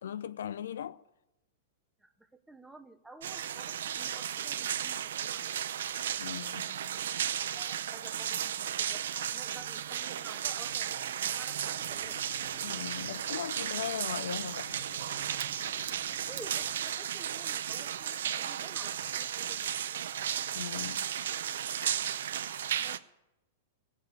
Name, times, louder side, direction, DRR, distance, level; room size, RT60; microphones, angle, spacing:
voice 1, 0.0-1.0 6.2-6.7 12.6-14.8 20.5-21.0, left 9 dB, 85° left, 0.6 m, -38 dB
voice 2, 2.0-5.5 7.5-12.2 16.3-19.7 22.8-23.0, right 2 dB, 5° right, 0.6 m, -52 dB
sound 1, 3.2-23.0, right 9 dB, 75° right, 0.6 m, -34 dB
sound 2, 11.6-16.7, left 4 dB, 35° left, 1.5 m, -54 dB
sound 3, 14.8-19.6, right 10 dB, 55° right, 1.2 m, -52 dB
17.5 x 7.3 x 8.1 m
supercardioid pair, 180°, 0 cm